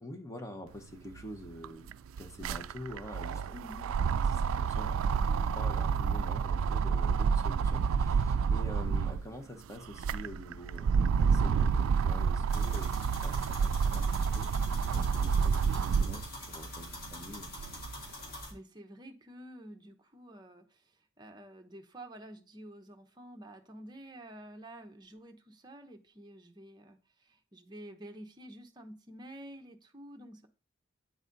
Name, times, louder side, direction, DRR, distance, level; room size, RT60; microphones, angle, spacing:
voice 1, 0.0-3.6 4.4-17.5, equal, 15° left, 4 dB, 0.9 m, -46 dB
sound 1, 1.1-1.2 1.5-9.3 9.8-16.3 16.8-17.9, right 6 dB, 85° right, 0.3 m, -29 dB
voice 2, 3.5-3.9 18.2-30.5, right 1 dB, 20° right, 4 dB, 0.8 m, -50 dB
sound 2, 12.5-18.5, left 1 dB, 50° left, 2.6 m, -45 dB
9.1 x 4.0 x 3.9 m, 0.36 s
head